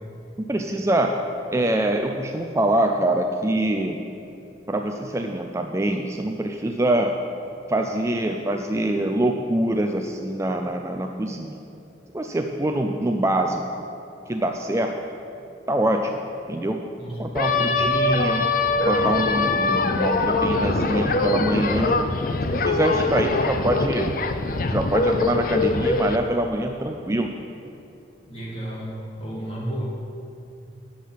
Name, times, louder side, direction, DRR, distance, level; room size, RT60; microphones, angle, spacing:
voice 1, 0.4-1.2 1.5-4.0 4.7-7.2 7.7-11.6 12.1-13.8 14.3-15.0 15.7-16.2 16.5-16.8 17.2-18.4 18.8-22.0 22.5-24.2 24.7-27.3, right 1 dB, 15° right, 4 dB, 0.4 m, -24 dB
voice 2, 17.0-18.3 28.3-29.8, right 1 dB, 30° left, -4 dB, 2.2 m, -33 dB
sound 1, 17.3-26.2, left 3 dB, 50° left, 0.5 m, -23 dB
10.0 x 7.4 x 5.9 m, 2.7 s
head